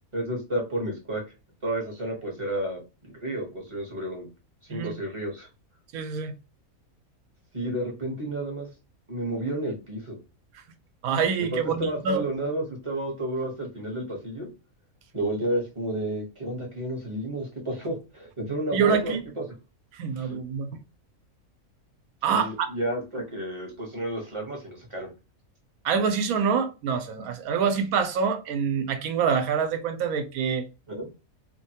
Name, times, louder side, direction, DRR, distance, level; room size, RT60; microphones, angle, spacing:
voice 1, 0.1-1.2 1.6-2.8 3.2-4.3 4.7-5.5 7.5-8.7 9.1-10.2 11.4-14.5 15.1-19.4 20.2-20.4 22.3-25.1 30.9-31.1, right 1 dB, 25° right, 0.8 m, -31 dB
voice 2, 5.9-6.3 11.0-12.2 18.7-19.2 19.9-20.7 22.2-22.7 25.8-30.6, right 6 dB, 85° right, 1.0 m, -26 dB
2.8 x 2.2 x 2.7 m
omnidirectional pair, 1.5 m